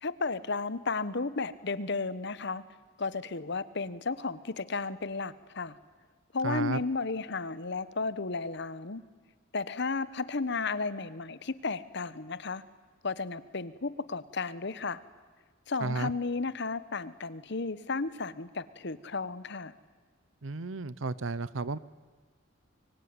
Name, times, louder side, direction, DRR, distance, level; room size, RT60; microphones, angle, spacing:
voice 1, 0.0-2.6 3.0-5.8 6.3-9.0 9.5-12.6 13.0-15.0 15.7-19.7, left 4 dB, 60° left, 16 dB, 1.2 m, -33 dB
voice 2, 6.4-6.8 15.8-16.1 20.4-21.8, right 3 dB, 75° right, 19 dB, 0.7 m, -32 dB
24.5 x 24.0 x 9.7 m, 1.5 s
head